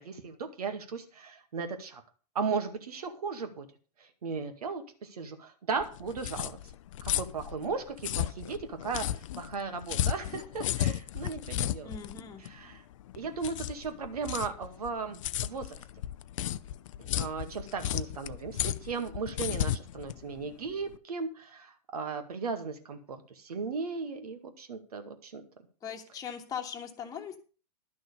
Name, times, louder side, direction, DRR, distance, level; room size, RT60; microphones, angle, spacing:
voice 1, 0.0-2.0 2.3-3.7 4.0-6.6 7.0-11.9 12.4-12.8 13.2-15.8 17.0-25.4, right 5 dB, 65° right, 7 dB, 2.1 m, -36 dB
sound 1, 5.8-21.0, left 12 dB, 50° left, 0.5 m, -34 dB
voice 2, 11.8-12.4 25.8-27.4, left 7 dB, 15° left, 1 dB, 1.6 m, -39 dB
12.0 x 6.4 x 6.7 m, 0.38 s
figure-of-eight pair, 105°, 21 cm